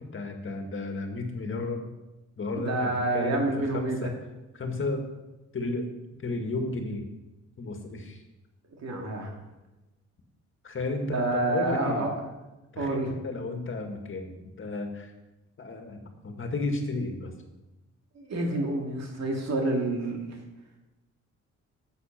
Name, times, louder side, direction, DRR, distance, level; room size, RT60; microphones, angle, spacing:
voice 1, 0.1-1.9 2.4-4.1 4.5-5.1 5.5-5.9 6.2-7.1 7.6-8.2 10.6-12.1 12.7-13.0 13.2-15.1 15.6-16.0 16.2-17.3, left 3 dB, 40° left, 4 dB, 2.1 m, -33 dB
voice 2, 2.6-4.1 8.8-9.3 11.0-12.1 12.8-13.1 18.2-20.4, right 2 dB, 60° right, 1 dB, 2.4 m, -28 dB
10.0 x 8.3 x 6.0 m, 1.0 s
cardioid pair, 90°, 30 cm